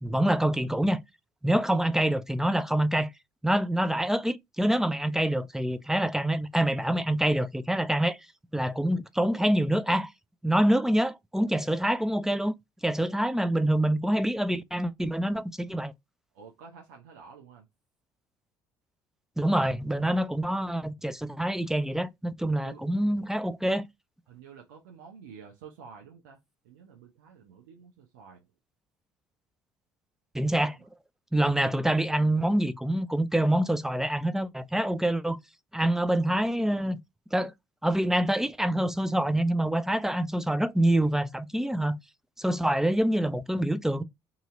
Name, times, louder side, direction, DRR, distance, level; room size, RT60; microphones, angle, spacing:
voice 1, 0.0-1.0 1.4-3.1 3.4-8.2 8.5-10.1 10.4-12.5 12.8-15.9 19.4-23.8 30.3-30.8 31.3-35.4 35.7-37.0 37.3-37.5 37.8-42.0 42.4-44.0, right 1 dB, 5° right, 0.4 m, -26 dB
voice 2, 16.3-17.7 22.5-22.8 24.3-26.4 26.6-28.5 30.6-30.9 31.4-31.8, right 6 dB, 80° right, 0.7 m, -50 dB
2.9 x 2.8 x 3.7 m
hypercardioid pair, 60°, 10 cm